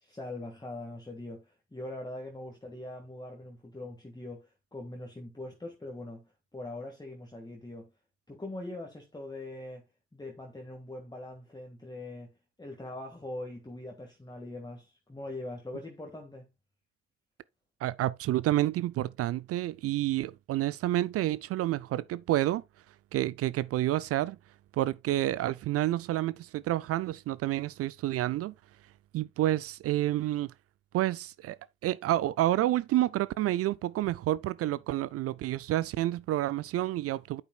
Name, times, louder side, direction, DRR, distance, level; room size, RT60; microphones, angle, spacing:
voice 1, 0.0-7.9 8.3-9.8 10.1-16.5, left 2 dB, 15° left, 1.8 m, -42 dB
voice 2, 17.8-22.6 23.1-24.4 24.7-28.5 29.1-30.5 30.9-31.6 31.8-37.4, right 14 dB, 55° right, 0.4 m, -29 dB
8.9 x 7.3 x 2.3 m
hypercardioid pair, 45°, 29 cm